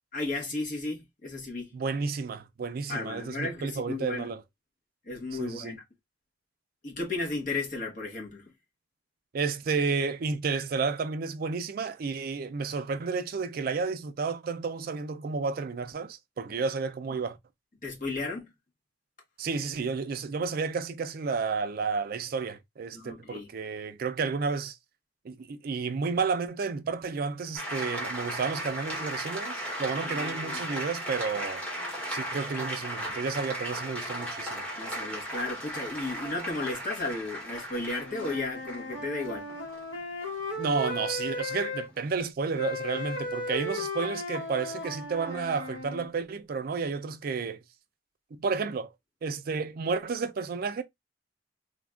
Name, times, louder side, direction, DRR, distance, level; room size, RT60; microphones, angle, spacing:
voice 1, 0.1-1.7 2.9-4.3 5.1-5.8 6.8-8.5 17.8-18.5 22.9-23.5 30.0-30.6 34.8-39.5, left 2 dB, 45° left, 1.0 m, -34 dB
voice 2, 1.7-4.4 5.3-5.8 9.3-17.4 19.4-24.8 25.2-31.6 32.1-34.6 40.6-47.6 48.3-48.9 49.2-50.8, right 5 dB, 55° right, 0.4 m, -31 dB
sound 1, 27.6-42.0, equal, 5° left, 0.8 m, -36 dB
Wind instrument woodwind instrument, 37.9-41.9 42.6-46.1, left 2 dB, 70° left, 1.1 m, -36 dB
3.3 x 2.2 x 2.3 m
head